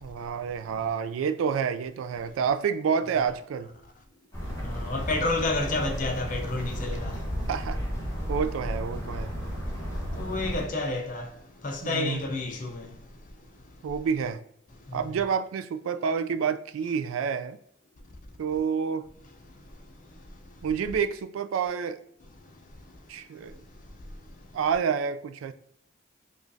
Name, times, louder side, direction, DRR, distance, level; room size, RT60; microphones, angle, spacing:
voice 1, 0.0-3.7 7.5-7.8 8.3-9.3 11.8-12.2 13.8-14.4 14.9-17.6 18.4-19.1 20.6-22.0 23.1-23.6 24.5-25.5, right 6 dB, 90° right, 0.3 m, -28 dB
sound 1, 4.3-10.6, equal, 15° left, 1.3 m, -33 dB
voice 2, 4.6-7.1 10.2-11.3 11.6-12.9, left 2 dB, 40° left, 0.6 m, -30 dB
4.9 x 2.4 x 2.6 m
head